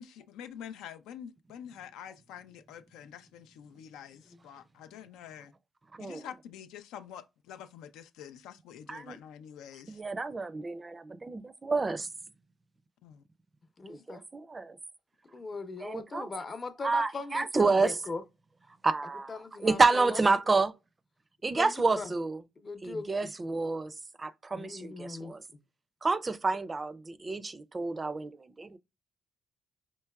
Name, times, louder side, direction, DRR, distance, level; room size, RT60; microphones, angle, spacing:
voice 1, 0.0-5.5 6.0-10.0 13.0-13.2, left 9 dB, 90° left, 0.4 m, -47 dB
voice 2, 5.9-6.3 8.9-9.2 9.9-12.1 13.9-14.8 15.8-16.3 16.8-18.0 18.8-20.7 21.4-22.4 22.8-25.4 26.0-28.8, right 3 dB, 30° right, 0.4 m, -29 dB
voice 3, 13.8-14.2 15.3-18.2 19.3-20.2 21.5-22.1 22.6-23.1 24.5-25.3, left 3 dB, 35° left, 0.7 m, -39 dB
4.5 x 3.0 x 2.3 m
cardioid pair, 75°, 0 cm